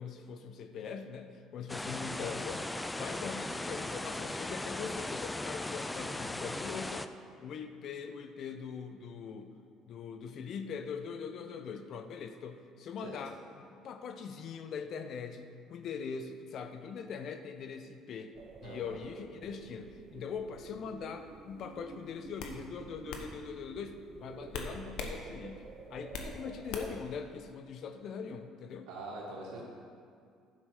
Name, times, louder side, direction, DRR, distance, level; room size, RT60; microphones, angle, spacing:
voice 1, 0.0-2.7 3.0-7.1 7.4-9.5 9.9-18.4 18.6-28.9, left 6 dB, 55° left, 8 dB, 0.7 m, -42 dB
sound 1, 1.7-7.1, left 1 dB, 10° left, 0.3 m, -38 dB
sound 2, 18.3-27.0, right 5 dB, 45° right, 0.6 m, -50 dB
sound 3, 21.6-21.8 22.4-22.6 23.1-23.3 24.5-25.2 25.5-26.3 26.7-27.1, left 4 dB, 75° left, 0.9 m, -40 dB
voice 2, 28.9-29.6, right 2 dB, 85° right, -3 dB, 2.1 m, -43 dB
11.5 x 5.9 x 4.8 m, 2.3 s
cardioid pair, 100°, 0 cm